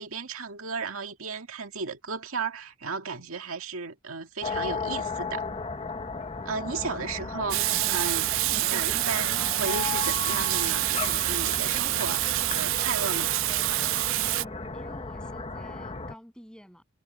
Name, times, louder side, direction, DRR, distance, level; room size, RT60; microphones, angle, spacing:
voice 1, 0.0-5.5 6.4-8.3 8.7-13.3, right 4 dB, 85° right, 2.0 m, -34 dB
sound 1, 4.4-16.1, left 4 dB, 30° left, 1.1 m, -35 dB
Water tap faucet / Sink (filling or washing), 7.5-14.4, right 19 dB, 65° right, 0.3 m, -27 dB
voice 2, 14.4-16.8, equal, 5° left, 7.8 m, -49 dB
head